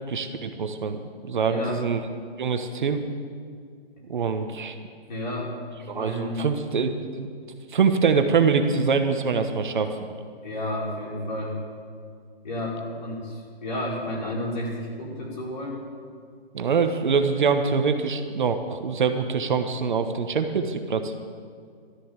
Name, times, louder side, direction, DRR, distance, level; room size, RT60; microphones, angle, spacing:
voice 1, 0.1-2.1 2.4-3.0 4.1-4.7 5.9-7.3 7.7-10.0 16.5-21.1, right 5 dB, 50° right, 7 dB, 1.2 m, -24 dB
voice 2, 1.4-1.8 4.4-4.5 5.1-5.5 5.9-6.5 10.4-11.5 12.4-15.8, left 1 dB, 45° left, -4 dB, 5.2 m, -31 dB
13.5 x 13.0 x 7.3 m, 2.1 s
hypercardioid pair, 165°, 31 cm